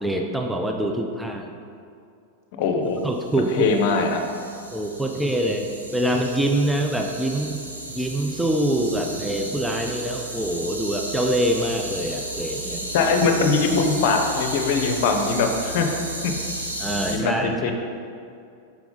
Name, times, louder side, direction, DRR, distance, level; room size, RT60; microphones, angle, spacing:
voice 1, 0.0-1.5 3.0-3.7 4.7-7.6 8.0-12.9 16.8-17.7, right 1 dB, 5° right, 2 dB, 0.5 m, -25 dB
voice 2, 2.6-3.1 3.4-4.2 12.9-15.9 16.2-16.3 17.0-17.7, left 4 dB, 50° left, 4 dB, 0.7 m, -22 dB
sound 1, 3.2-17.2, right 1 dB, 85° right, 0.7 m, -34 dB
5.8 x 4.7 x 3.9 m, 2.4 s
figure-of-eight pair, 90°, 0 cm